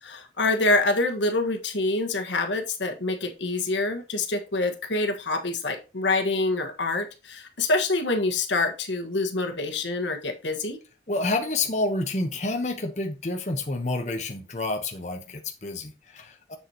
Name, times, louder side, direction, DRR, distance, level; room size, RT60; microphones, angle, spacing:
voice 1, 0.0-10.8, left 2 dB, 85° left, 1.5 m, -26 dB
voice 2, 11.1-16.6, left 2 dB, 40° left, 1.0 m, -29 dB
7.3 x 7.2 x 2.9 m
head